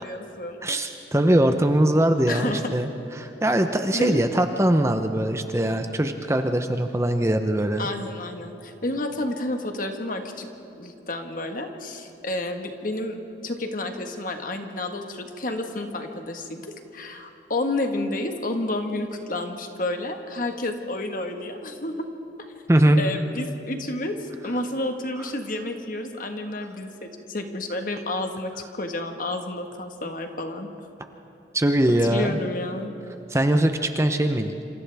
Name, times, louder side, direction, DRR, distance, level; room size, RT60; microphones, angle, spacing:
voice 1, 0.0-0.8 2.3-2.6 3.9-4.2 7.8-10.5 10.8-13.2 13.4-16.6 16.9-22.1 22.4-22.5 23.0-30.7 32.0-32.9, left 2 dB, 45° left, 4 dB, 1.5 m, -30 dB
voice 2, 0.6-2.9 3.2-7.9 22.7-23.0 31.5-32.4 33.3-34.7, right 1 dB, 15° right, 6 dB, 0.7 m, -21 dB
27.5 x 27.0 x 3.5 m, 2.8 s
head